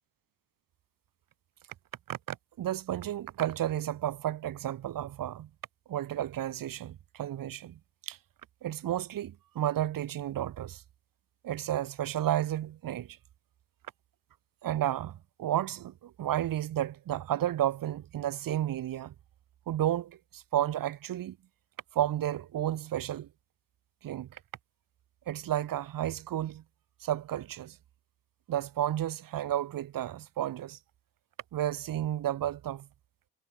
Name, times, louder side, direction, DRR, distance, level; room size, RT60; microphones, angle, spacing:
voice 1, 2.1-5.5 5.9-7.8 8.1-8.2 8.6-10.8 11.4-13.2 14.6-19.1 19.7-21.4 21.9-23.3 24.0-24.4 25.3-26.6 27.0-27.8 28.5-30.8 31.5-32.9, right 12 dB, 50° right, 1.2 m, -32 dB
cardioid pair, 150°, 44 cm